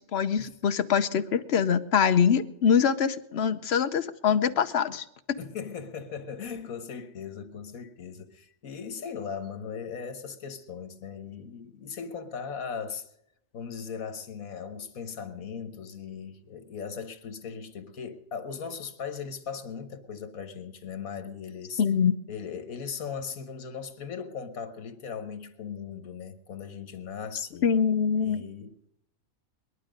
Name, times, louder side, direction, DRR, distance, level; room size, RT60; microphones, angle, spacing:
voice 1, 0.0-5.0 21.8-22.2 27.6-28.4, left 7 dB, 55° left, 1.0 m, -24 dB
voice 2, 5.4-13.1 13.5-21.8 22.3-27.7 28.1-28.9, left 6 dB, 80° left, 1.7 m, -38 dB
20.0 x 11.5 x 5.2 m
omnidirectional pair, 1.4 m